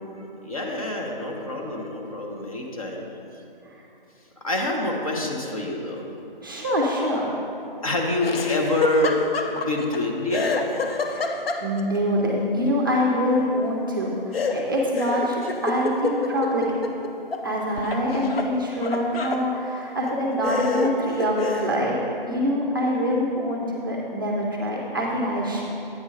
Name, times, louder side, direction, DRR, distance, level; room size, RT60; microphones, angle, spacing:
voice 1, 0.2-3.1 4.4-6.1 7.8-10.6, left 1 dB, 40° left, 0 dB, 0.9 m, -26 dB
voice 2, 6.4-7.3 11.0-16.6 17.4-21.9 22.2-25.6, equal, 25° right, -3 dB, 0.6 m, -25 dB
Laughter, 8.2-10.0 10.3-12.0 14.3-17.5 17.8-19.4 20.0-20.1 20.4-21.8, left 3 dB, 85° left, 0.8 m, -28 dB
8.7 x 5.3 x 4.8 m, 2.8 s
hypercardioid pair, 165°, 29 cm